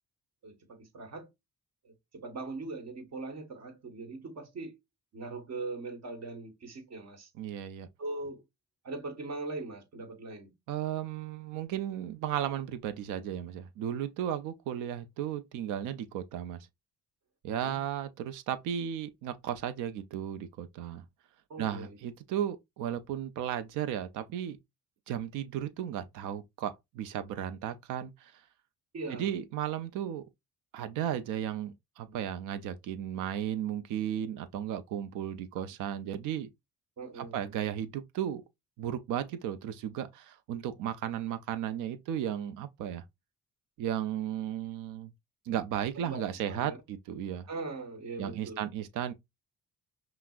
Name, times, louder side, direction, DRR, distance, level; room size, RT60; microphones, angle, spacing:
voice 1, 0.4-1.3 1.8-4.8 5.1-7.3 8.0-8.4 8.8-10.5 17.5-17.8 21.5-22.0 28.9-29.4 37.0-37.4 46.0-46.8 47.5-48.7, right 3 dB, 60° right, 1.4 m, -41 dB
voice 2, 7.4-7.9 10.7-16.6 17.4-21.0 21.6-24.6 25.1-28.4 29.2-30.2 30.7-36.5 37.2-38.4 38.8-43.0 43.8-45.1 45.5-47.5 48.2-49.1, right 10 dB, 85° right, 0.5 m, -35 dB
5.6 x 2.0 x 2.4 m
cardioid pair, 90°, 30 cm